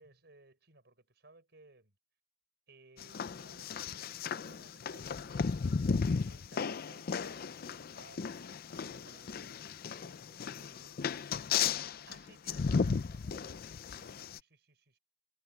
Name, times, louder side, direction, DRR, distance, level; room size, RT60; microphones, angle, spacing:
voice 1, 0.0-1.9 2.7-9.2 12.0-13.6 13.9-15.0, right 3 dB, 65° right, 6.2 m, -60 dB
sound 1, 3.0-14.4, left 5 dB, 55° left, 0.5 m, -35 dB
voice 2, 8.7-11.1, right 2 dB, 85° right, 4.1 m, -65 dB
head